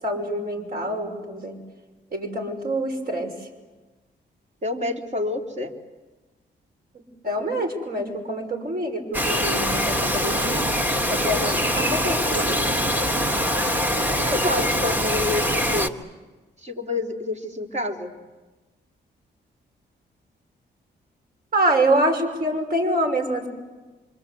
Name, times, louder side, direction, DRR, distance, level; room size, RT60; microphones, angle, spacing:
voice 1, 0.0-1.6 2.1-3.3 6.9-10.6 11.1-12.7 21.5-23.5, right 1 dB, 55° right, 3 dB, 5.9 m, -26 dB
voice 2, 4.6-5.7 14.3-16.0 16.6-18.1, left 2 dB, 40° right, 2 dB, 3.4 m, -28 dB
Bird vocalization bird call bird song, 9.1-15.9, equal, 10° right, 1.6 m, -23 dB
26.5 x 25.5 x 8.3 m, 1.2 s
cardioid pair, 90°, 19 cm